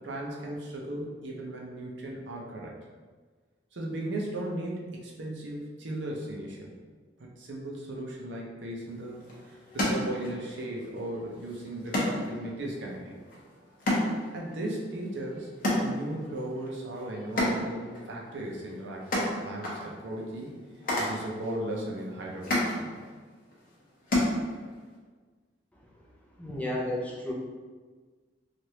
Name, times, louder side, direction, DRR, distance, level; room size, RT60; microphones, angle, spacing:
voice 1, 0.0-2.8 3.7-6.7 7.2-13.1 14.3-15.5 15.8-19.0 19.4-20.5 21.0-23.0, right 1 dB, 70° right, -2 dB, 0.6 m, -36 dB
sound 1, 8.9-24.9, left 1 dB, 50° left, 0.7 m, -33 dB
voice 2, 26.4-27.3, left 1 dB, 10° left, -4 dB, 0.5 m, -32 dB
3.2 x 2.5 x 2.8 m, 1.4 s
head